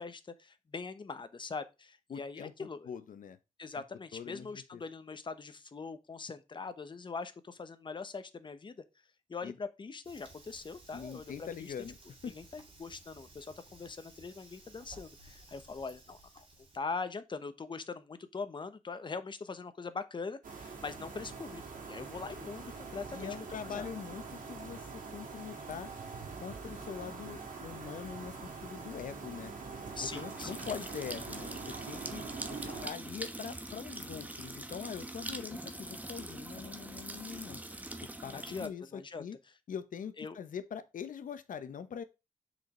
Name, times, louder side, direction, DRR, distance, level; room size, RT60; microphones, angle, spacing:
voice 1, 0.0-2.9 3.6-8.8 9.3-11.7 12.3-16.5 16.7-21.6 21.9-23.4 23.6-23.9 30.0-30.6 32.7-32.8 38.3-39.2 40.2-40.4, left 4 dB, 35° left, 1.0 m, -42 dB
voice 2, 2.1-3.4 3.7-3.8 4.1-4.8 9.4-9.6 10.9-12.0 12.2-12.3 23.1-24.2 24.5-25.9 26.4-28.3 28.6-29.5 30.1-32.2 32.5-37.6 38.2-39.4 39.7-42.0, left 7 dB, 90° left, 1.0 m, -43 dB
Fire, 10.0-16.8, right 2 dB, 40° right, 2.4 m, -57 dB
sound 1, 20.4-32.9, right 4 dB, 90° right, 2.3 m, -44 dB
sound 2, 25.7-38.7, right 1 dB, 10° right, 1.0 m, -44 dB
6.6 x 5.2 x 3.8 m
wide cardioid pair, 130°, 13 cm